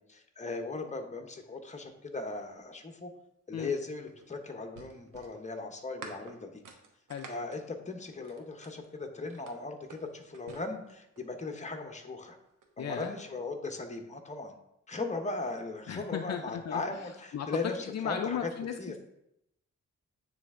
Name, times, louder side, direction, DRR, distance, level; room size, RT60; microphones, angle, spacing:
voice 1, 0.0-3.1 3.5-6.6 7.3-12.4 12.8-14.5 14.9-18.5 18.8-18.9, left 3 dB, 20° left, 4 dB, 1.0 m, -38 dB
sound 1, 3.6-8.9 9.3-11.4 12.4-13.1, right 4 dB, 80° right, 1.0 m, -51 dB
voice 2, 12.8-13.1 15.9-19.0, left 8 dB, 55° left, 6 dB, 0.5 m, -36 dB
8.9 x 3.3 x 3.7 m, 0.81 s
cardioid pair, 75°, 31 cm